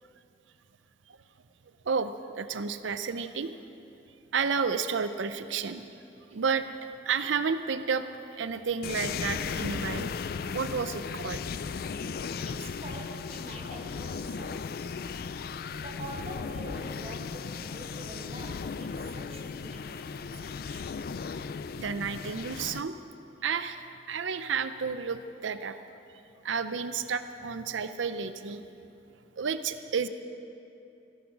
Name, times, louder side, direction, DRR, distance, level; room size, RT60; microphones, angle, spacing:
voice 1, 1.8-3.5 4.3-5.8 6.3-6.6 7.0-8.1 8.3-11.5 21.8-22.9 23.4-25.8 26.4-28.6 29.4-30.1, right 5 dB, 85° right, 11 dB, 0.6 m, -31 dB
sound 1, 8.8-22.8, left 5 dB, 50° left, 0.3 m, -36 dB
voice 2, 12.4-14.8 15.8-20.9, right 2 dB, 30° right, 1 dB, 1.6 m, -46 dB
17.0 x 10.0 x 5.9 m, 2.7 s
head